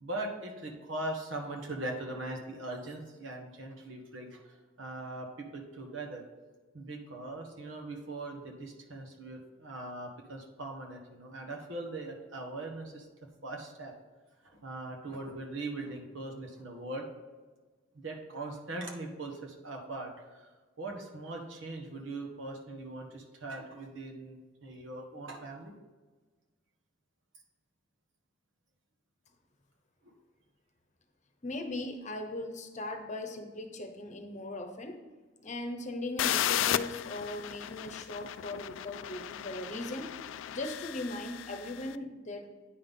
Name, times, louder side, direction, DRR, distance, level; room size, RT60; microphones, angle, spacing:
voice 1, 0.0-6.2 6.7-13.1 13.4-13.9 14.4-17.0 18.0-20.5 20.8-25.7 30.0-30.1, right 2 dB, 85° right, 1 dB, 1.5 m, -40 dB
voice 2, 31.4-35.0 35.4-40.1 40.5-42.5, left 2 dB, 40° left, 4 dB, 0.9 m, -39 dB
sound 1, 36.2-41.9, left 11 dB, 80° left, 0.3 m, -34 dB
9.1 x 5.6 x 3.7 m, 1.3 s
head